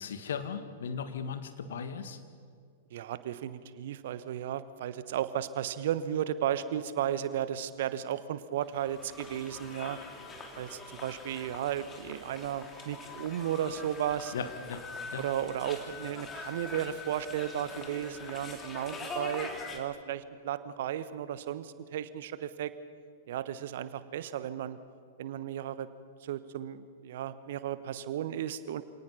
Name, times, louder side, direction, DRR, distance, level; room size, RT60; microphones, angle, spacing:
voice 1, 0.0-2.2 14.3-15.2, left 6 dB, 65° left, 10 dB, 1.6 m, -37 dB
voice 2, 2.9-10.0 10.6-14.3 15.2-22.7 23.3-24.8 25.2-25.9 26.2-28.8, right 10 dB, 60° right, 14 dB, 1.1 m, -34 dB
sound 1, 8.6-19.8, left 3 dB, 20° left, 2.9 m, -43 dB
27.5 x 18.5 x 5.8 m, 2.2 s
figure-of-eight pair, 100°, 0 cm